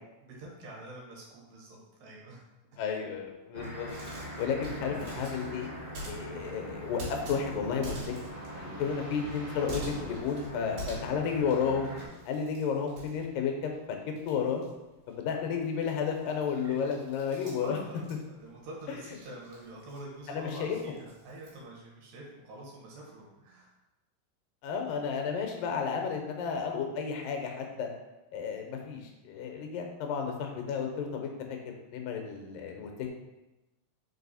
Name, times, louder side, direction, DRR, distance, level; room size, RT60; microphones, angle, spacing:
voice 1, 0.2-2.4 3.6-3.8 4.6-5.1 6.2-6.5 16.6-17.0 17.6-23.7, right 1 dB, 80° right, -3 dB, 3.1 m, -46 dB
voice 2, 2.8-3.9 4.4-5.7 6.0-8.1 8.6-11.9 12.2-14.0 14.3-14.6 15.1-17.8 20.3-20.8 24.6-27.9 28.3-33.2, left 6 dB, 80° left, 3 dB, 2.5 m, -32 dB
sound 1, 3.5-12.0, equal, 35° right, 1.3 m, -42 dB
sound 2, 3.8-13.8 14.1-21.6, right 1 dB, 65° right, 3.1 m, -47 dB
5.3 x 4.7 x 4.1 m, 1.0 s
omnidirectional pair, 4.0 m